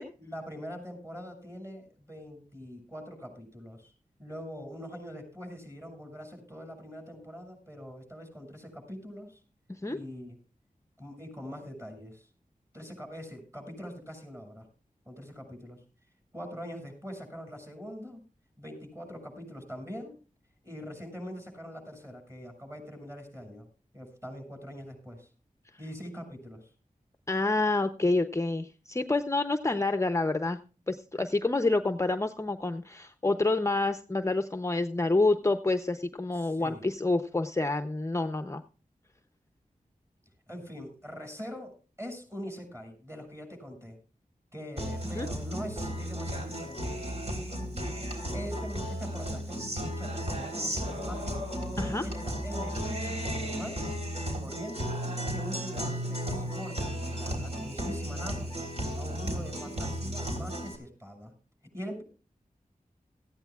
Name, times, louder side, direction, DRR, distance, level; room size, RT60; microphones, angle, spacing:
voice 1, 0.2-3.9 4.2-9.4 9.9-10.4 11.0-12.3 12.7-14.7 15.1-15.8 16.3-18.2 18.6-20.1 20.6-23.7 23.9-25.3 25.8-26.7 36.3-36.9 40.5-44.0 44.5-47.0 48.3-51.5 52.0-53.9 54.4-55.0 55.3-58.5 58.9-61.3 61.7-62.0, equal, 20° right, 4 dB, 7.1 m, -43 dB
voice 2, 27.3-30.6 30.9-38.6 45.1-45.3 51.8-52.0, left 2 dB, 20° left, 8 dB, 0.7 m, -28 dB
Guitar, 44.8-60.8, equal, 50° right, 3.6 m, -34 dB
17.5 x 14.5 x 2.4 m, 0.36 s
wide cardioid pair, 70°, 14 cm